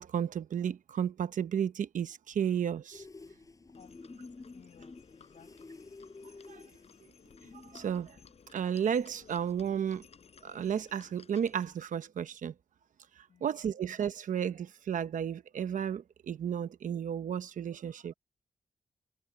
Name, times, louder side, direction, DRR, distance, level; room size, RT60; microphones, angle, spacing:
voice 1, 0.0-3.0 6.5-6.6 7.7-8.2 8.5-10.0 10.4-12.5 13.4-18.1, right 8 dB, 75° right, 0.9 m, -33 dB
sound 1, 2.9-8.1, left 3 dB, 25° left, 6.1 m, -51 dB
voice 2, 3.7-4.2 4.5-5.8 13.3-13.5, left 7 dB, 70° left, 6.7 m, -60 dB
Livestock farm animals working animals, 3.7-11.9, left 6 dB, 50° left, 5.2 m, -58 dB
wide cardioid pair, 180°, 14 cm